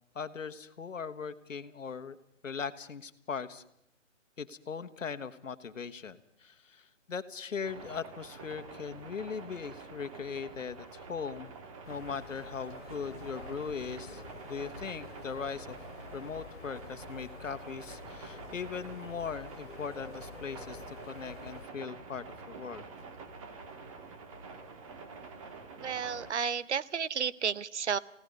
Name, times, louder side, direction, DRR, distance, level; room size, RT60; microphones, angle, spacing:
voice 1, 0.1-2.2 2.4-3.6 4.4-11.5 11.9-15.9 16.1-22.8, left 6 dB, 80° left, 12 dB, 1.5 m, -39 dB
sound 1, 7.6-26.3, right 4 dB, 25° right, 1.8 m, -47 dB
sound 2, 11.8-21.7, left 5 dB, 60° left, 2.5 m, -49 dB
voice 2, 25.8-28.0, right 7 dB, 60° right, 18 dB, 0.9 m, -32 dB
29.0 x 17.0 x 5.4 m, 0.73 s
hypercardioid pair, 160°, 38 cm